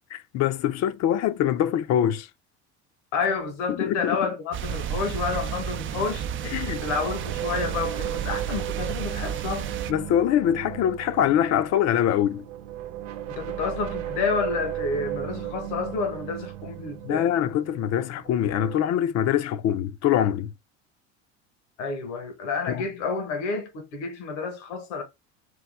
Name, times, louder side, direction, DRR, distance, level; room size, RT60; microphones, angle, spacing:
voice 1, 0.0-2.3 3.7-4.2 6.4-6.8 9.9-12.4 17.1-20.5 22.7-22.8, left 10 dB, 45° left, 0.6 m, -24 dB
voice 2, 3.1-6.3 6.8-9.7 13.4-17.3 21.8-25.0, left 4 dB, 80° left, 1.3 m, -29 dB
sound 1, 4.5-9.9, right 9 dB, 35° right, 0.4 m, -32 dB
sound 2, 5.3-18.8, right 12 dB, 80° right, 0.8 m, -36 dB
4.6 x 2.3 x 3.4 m
hypercardioid pair, 85°, 36 cm